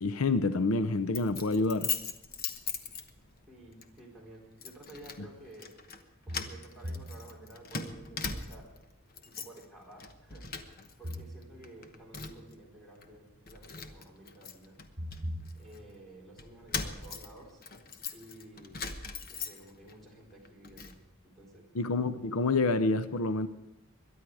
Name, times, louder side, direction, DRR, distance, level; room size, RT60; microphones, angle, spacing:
voice 1, 0.0-1.9 21.7-23.5, left 3 dB, 80° left, 0.6 m, -28 dB
Keys jangling, 1.1-3.4 3.8-4.0 4.6-5.2 5.5-6.0 6.3-8.8 9.1-9.6 10.0-11.2 11.4-12.5 13.0-13.1 13.5-15.8 16.4-19.9 20.3-21.0, left 5 dB, 45° left, 1.1 m, -40 dB
voice 2, 3.5-5.7 6.2-8.7 9.2-10.5 11.0-14.8 15.5-17.7 18.1-18.9 19.3-21.0 21.2-21.7, right 1 dB, ahead, 4.4 m, -52 dB
sound 1, 3.6-3.7 6.3-7.9 11.0-12.1 15.0-16.3, equal, 40° right, 7.1 m, -42 dB
22.0 x 11.0 x 4.8 m
head